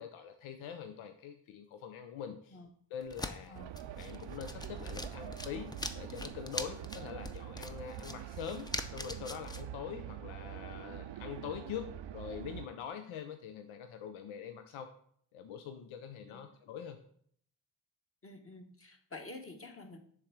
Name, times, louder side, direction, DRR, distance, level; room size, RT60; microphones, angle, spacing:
voice 1, 0.0-2.6 2.9-3.6 4.0-14.9 15.3-17.0, left 8 dB, 90° left, 7 dB, 0.5 m, -44 dB
sound 1, 3.0-9.6, left 1 dB, 10° left, 0.5 m, -43 dB
sound 2, 3.6-12.7, right 11 dB, 65° right, 0.5 m, -45 dB
voice 2, 18.2-20.0, left 2 dB, 30° left, 4 dB, 1.1 m, -49 dB
6.6 x 3.4 x 4.6 m, 0.62 s
supercardioid pair, 45°, 47 cm